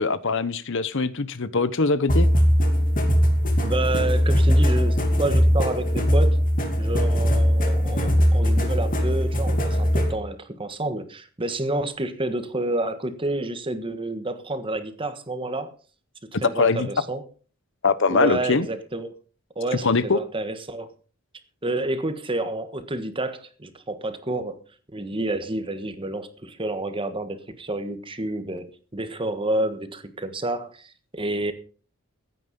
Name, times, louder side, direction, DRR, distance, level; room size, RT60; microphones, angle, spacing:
voice 1, 0.0-2.3 16.6-16.9 17.8-18.7 19.8-20.2, left 4 dB, 60° left, 0.9 m, -22 dB
sound 1, 2.1-10.1, equal, 40° left, 2.7 m, -20 dB
voice 2, 3.6-6.4 6.8-15.8 16.2-17.2 18.1-19.1 19.5-20.9 21.6-24.6 24.9-31.5, right 2 dB, 25° right, 1.5 m, -29 dB
15.5 x 9.5 x 5.4 m
head